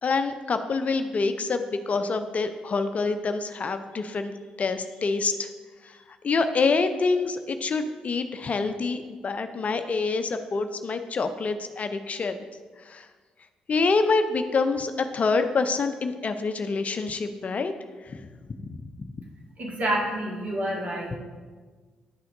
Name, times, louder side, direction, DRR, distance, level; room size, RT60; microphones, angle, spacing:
voice 1, 0.0-5.5 5.8-6.0 6.2-12.3 12.8-13.1 13.7-17.7 18.0-18.3 18.8-18.9 21.1-21.2, left 4 dB, 45° left, 8 dB, 0.5 m, -26 dB
voice 2, 19.6-21.2, right 1 dB, 45° right, -2 dB, 1.8 m, -28 dB
10.0 x 5.7 x 2.6 m, 1.4 s
hypercardioid pair, 45°, 3 cm